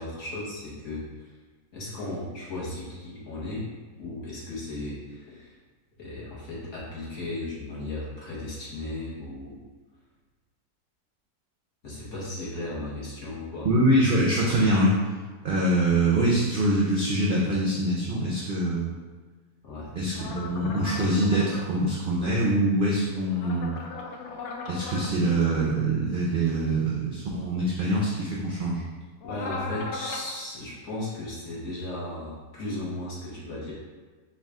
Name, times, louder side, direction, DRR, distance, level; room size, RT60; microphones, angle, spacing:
voice 1, 0.0-1.3 1.7-3.7 4.0-5.6 6.0-9.6 11.8-13.7 19.6-19.9 29.2-33.7, left 2 dB, 50° left, -7 dB, 1.5 m, -35 dB
voice 2, 13.6-14.9 15.4-18.9 20.0-23.8 24.7-28.8, right 1 dB, 60° right, -5 dB, 0.5 m, -24 dB
sound 1, 20.1-21.7 23.3-25.1 29.2-30.3, left 3 dB, 70° left, 0.7 m, -37 dB
4.8 x 2.4 x 3.5 m, 1.4 s
omnidirectional pair, 1.6 m